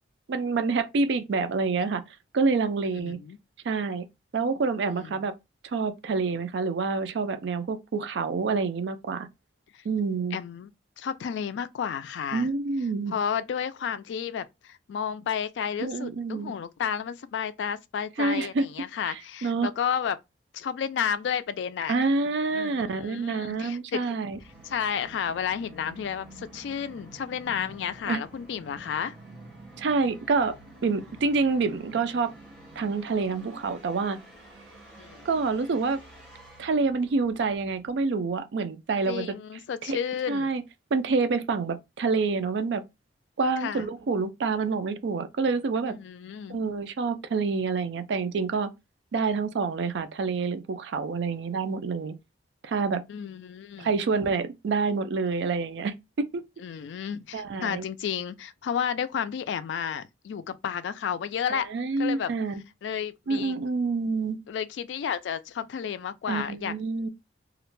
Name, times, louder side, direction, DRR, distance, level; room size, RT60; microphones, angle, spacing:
voice 1, 0.3-2.0 2.3-3.2 3.6-4.1 4.3-5.3 5.6-9.3 9.8-10.4 12.3-13.1 15.8-16.5 18.2-18.7 19.0-19.7 21.9-24.4 28.1-28.2 29.8-30.6 30.8-32.3 32.8-34.2 35.2-36.0 36.6-39.4 39.8-40.0 40.3-40.6 40.9-42.8 43.4-46.0 46.5-48.7 49.1-52.2 52.6-53.0 53.8-56.4 57.3-57.9 61.5-62.6 63.3-64.4 66.3-67.1, right 4 dB, 70° right, 0.4 m, -27 dB
voice 2, 2.9-3.4 5.0-5.2 9.7-9.8 10.3-10.7 11.0-12.5 13.1-20.2 20.5-22.0 22.5-24.0 24.6-29.2 35.0-35.2 39.1-40.5 43.6-43.9 45.9-46.6 53.1-54.0 56.6-61.7 62.0-62.3 62.8-63.5 64.5-66.7, left 7 dB, 75° left, 0.3 m, -32 dB
Musical instrument, 24.3-38.0, right 1 dB, ahead, 1.1 m, -49 dB
2.4 x 2.1 x 3.0 m
head